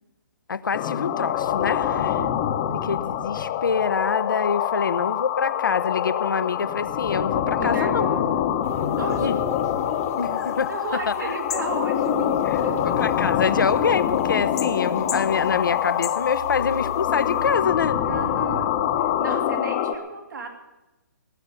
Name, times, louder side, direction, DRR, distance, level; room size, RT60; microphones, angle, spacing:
voice 1, 0.5-2.3 2.8-8.1 9.2-9.4 10.2-11.0 12.8-18.0 19.3-19.4, left 6 dB, 85° left, 14 dB, 1.0 m, -26 dB
sound 1, 0.7-19.9, left 10 dB, 30° left, 1.0 m, -25 dB
voice 2, 7.6-8.4 9.0-9.4 10.7-13.2 18.0-20.5, right 4 dB, 70° right, 4 dB, 2.9 m, -34 dB
sound 2, 8.6-17.6, left 7 dB, 50° left, 1.3 m, -40 dB
18.5 x 9.6 x 7.0 m, 1.0 s
hypercardioid pair, 155°, 10 cm